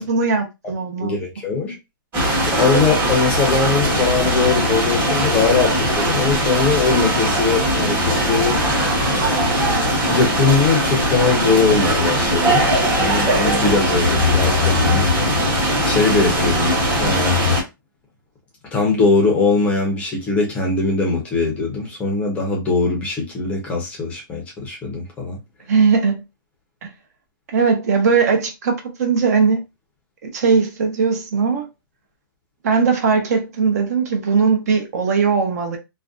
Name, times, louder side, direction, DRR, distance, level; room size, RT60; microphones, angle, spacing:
voice 1, 0.0-1.2 25.7-26.2 27.5-29.6 30.3-31.7 32.6-35.8, right 5 dB, 45° right, 0.7 m, -19 dB
voice 2, 1.0-1.8 2.4-8.6 10.1-12.6 13.0-15.4 15.8-16.8 17.0-17.4 18.7-25.4, left 4 dB, 10° left, 0.6 m, -21 dB
sound 1, 2.1-17.6, equal, 15° right, 1.1 m, -19 dB
2.5 x 2.2 x 2.4 m
hypercardioid pair, 160°, 12 cm